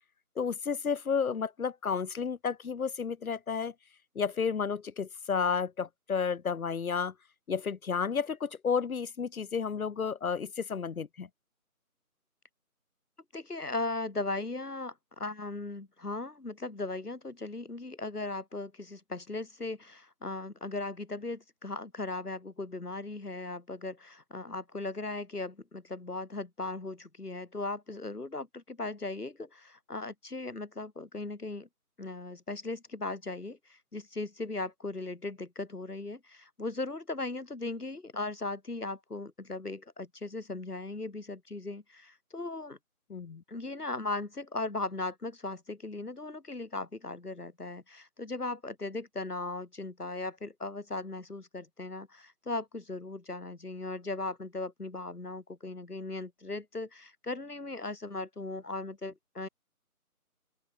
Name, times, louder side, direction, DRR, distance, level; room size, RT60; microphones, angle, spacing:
voice 1, 0.4-3.7 4.2-7.1 7.5-11.3 43.1-43.4, left 6 dB, 70° left, 0.8 m, -32 dB
voice 2, 13.3-31.7 32.0-42.8 43.5-59.5, left 2 dB, 85° left, 4.8 m, -38 dB
open air
figure-of-eight pair, 175°, 45 cm